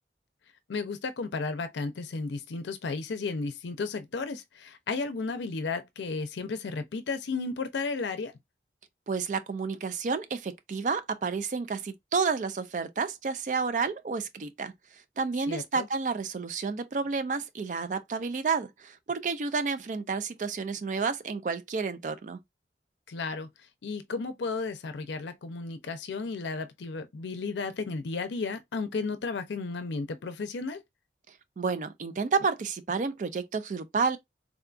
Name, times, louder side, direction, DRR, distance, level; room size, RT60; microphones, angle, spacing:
voice 1, 0.7-8.3 15.5-15.9 23.1-30.8, left 4 dB, 85° left, 0.5 m, -33 dB
voice 2, 9.1-14.7 15.2-22.4 31.6-34.2, right 5 dB, 45° right, 0.3 m, -30 dB
3.6 x 2.3 x 2.4 m
head